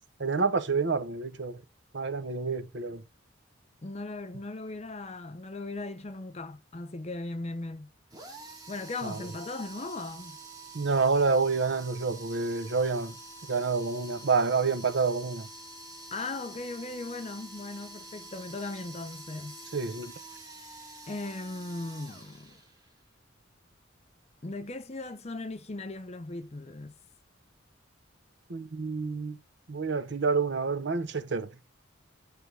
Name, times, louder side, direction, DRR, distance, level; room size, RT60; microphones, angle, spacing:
voice 1, 0.2-1.6 1.9-3.0 9.0-9.3 10.7-13.2 13.5-15.5 19.7-20.1 28.5-29.4 29.7-31.5, right 4 dB, 60° right, 0.7 m, -28 dB
voice 2, 3.8-7.9 8.7-10.4 16.1-19.6 21.1-22.6 24.4-26.9, left 2 dB, 35° left, 0.6 m, -38 dB
sound 1, 8.1-23.0, right 2 dB, 20° right, 1.5 m, -47 dB
6.8 x 3.3 x 6.1 m
head